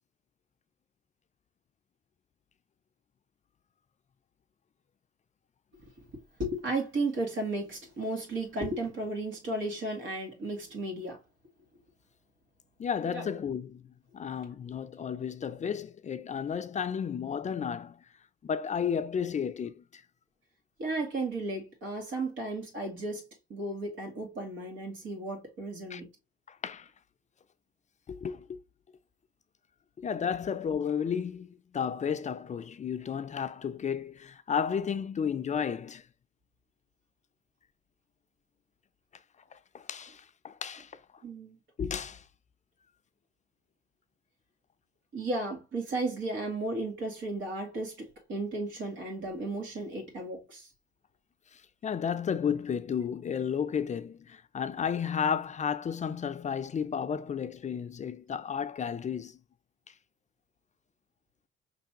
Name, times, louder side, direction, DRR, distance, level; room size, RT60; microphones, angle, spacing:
voice 1, 6.4-11.2 13.1-13.4 20.8-23.2 23.5-26.1 41.2-41.6 45.1-50.7, right 2 dB, 75° right, 2.2 m, -34 dB
voice 2, 12.8-18.0 18.4-20.0 25.9-26.0 26.5-26.9 28.1-28.6 30.0-36.1 39.5-40.9 41.8-42.2 51.5-59.4 59.9-60.0, left 7 dB, 35° left, 0.5 m, -33 dB
5.2 x 3.3 x 2.9 m
cardioid pair, 90°, 20 cm